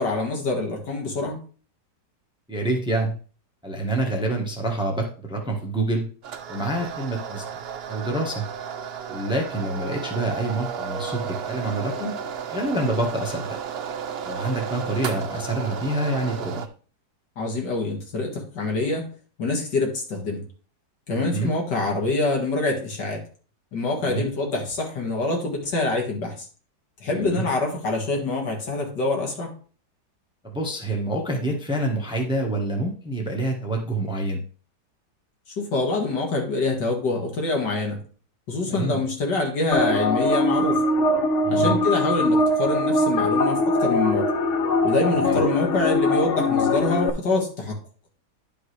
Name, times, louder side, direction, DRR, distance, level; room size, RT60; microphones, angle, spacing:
voice 1, 0.0-1.4 17.4-19.1 19.4-20.4 21.1-23.2 23.7-26.5 27.0-29.5 35.6-38.0 38.5-40.8 41.5-44.3 44.8-47.8, left 2 dB, 75° left, 1 dB, 2.5 m, -25 dB
voice 2, 2.5-3.1 3.6-6.1 6.5-7.4 7.9-8.4 9.1-12.1 12.5-13.6 14.2-16.7 21.2-21.5 24.0-24.3 27.1-27.5 30.4-34.4 38.6-39.0 41.4-41.8 45.2-45.4, right 1 dB, 5° right, 1 dB, 1.1 m, -27 dB
sound 1, 6.2-16.7, right 7 dB, 85° right, 0.5 m, -33 dB
sound 2, 39.7-47.1, left 2 dB, 55° left, 1.0 m, -22 dB
11.0 x 5.1 x 3.2 m, 0.40 s
omnidirectional pair, 1.9 m